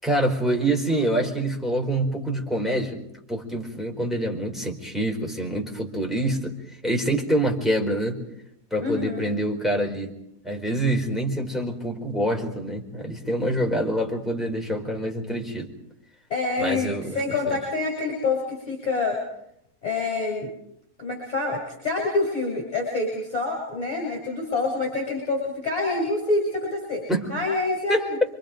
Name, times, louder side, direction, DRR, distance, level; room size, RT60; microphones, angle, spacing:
voice 1, 0.0-3.0 3.3-6.5 6.8-8.2 8.7-10.1 10.4-15.7 16.6-17.2 17.5-17.6 27.1-27.3 27.9-28.0, right 1 dB, ahead, 0 dB, 4.4 m, -26 dB
voice 2, 8.8-9.3 16.3-19.2 19.8-20.5 21.0-27.0 27.3-28.0, left 3 dB, 25° left, 0 dB, 7.5 m, -26 dB
28.5 x 25.5 x 5.2 m, 0.76 s
omnidirectional pair, 1.7 m